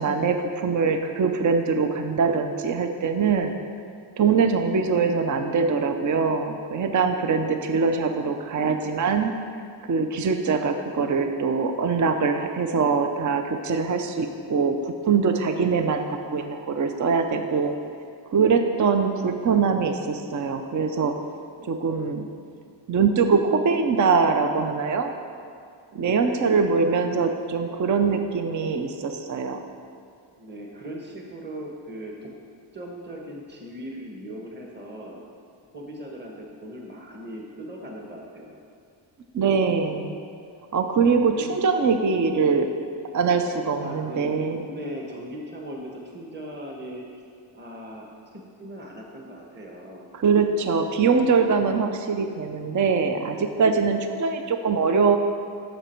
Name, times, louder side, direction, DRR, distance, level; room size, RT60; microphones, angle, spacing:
voice 1, 0.0-3.5 4.2-9.3 9.9-17.7 18.3-21.2 21.6-22.3 22.9-25.1 25.9-29.6 39.3-40.2 40.7-42.7 43.1-44.6 50.1-55.2, right 5 dB, 40° right, 6 dB, 0.6 m, -23 dB
voice 2, 26.0-27.0 30.4-32.3 32.7-35.2 35.7-38.6 41.3-41.6 43.8-44.3 44.6-47.2 47.5-50.1, right 1 dB, 20° right, -1 dB, 1.4 m, -39 dB
13.0 x 6.3 x 4.5 m, 2.4 s
cardioid pair, 110°, 49 cm